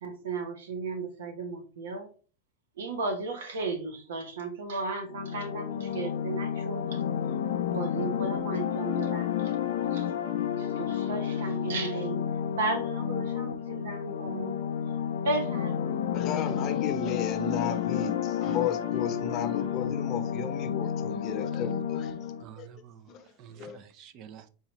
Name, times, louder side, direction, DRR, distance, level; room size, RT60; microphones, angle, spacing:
voice 1, 0.0-2.1 2.8-7.0 7.7-9.6 9.8-10.1 10.6-12.2 12.5-14.5 15.2-16.1, right 3 dB, 85° right, 1.1 m, -34 dB
sound 1, 5.1-22.4, left 9 dB, 85° left, 0.5 m, -31 dB
voice 2, 16.1-22.3 22.6-22.7 23.1-23.2 23.6-23.8, left 7 dB, 40° left, 0.7 m, -34 dB
voice 3, 22.4-24.5, right 9 dB, 45° right, 0.5 m, -49 dB
4.2 x 3.8 x 3.1 m
supercardioid pair, 120°, 0 cm